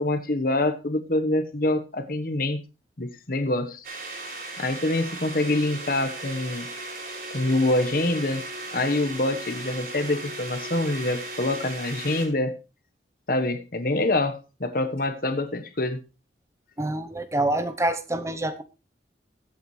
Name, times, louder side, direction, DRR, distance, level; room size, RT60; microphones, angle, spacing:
voice 1, 0.0-2.6 3.0-3.8 4.6-6.7 7.3-8.4 8.7-12.6 13.3-16.0, left 2 dB, 50° left, 9 dB, 1.3 m, -25 dB
sound 1, 3.8-12.3, right 2 dB, 50° right, 5.0 m, -36 dB
voice 2, 16.8-18.6, right 1 dB, 15° right, 10 dB, 0.8 m, -26 dB
21.0 x 8.4 x 3.3 m, 0.28 s
head